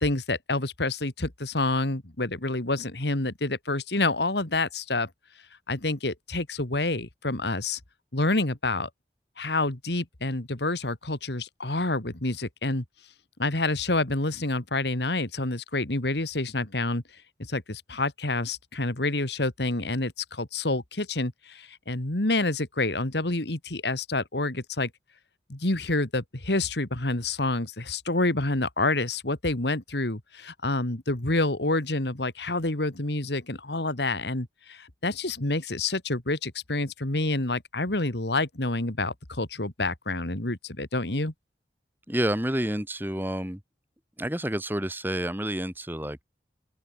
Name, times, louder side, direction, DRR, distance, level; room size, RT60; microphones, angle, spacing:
voice 1, 0.0-5.1 5.7-7.8 8.1-8.9 9.4-12.8 13.4-17.0 17.4-24.9 25.5-41.3, left 2 dB, 75° left, 2.4 m, -28 dB
voice 2, 42.1-43.6 44.2-46.2, right 1 dB, 10° right, 2.2 m, -29 dB
open air
head